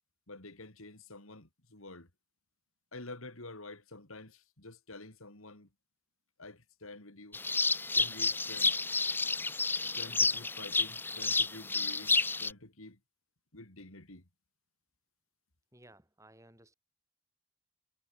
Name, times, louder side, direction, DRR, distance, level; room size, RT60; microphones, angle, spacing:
voice 1, 0.3-2.1 2.9-5.7 6.4-7.4 7.9-8.8 9.9-13.0 13.5-14.3, left 2 dB, 75° left, 3.7 m, -49 dB
sound 1, 7.3-12.5, left 3 dB, 10° left, 0.5 m, -30 dB
voice 2, 15.7-16.7, right 1 dB, 15° right, 6.6 m, -58 dB
head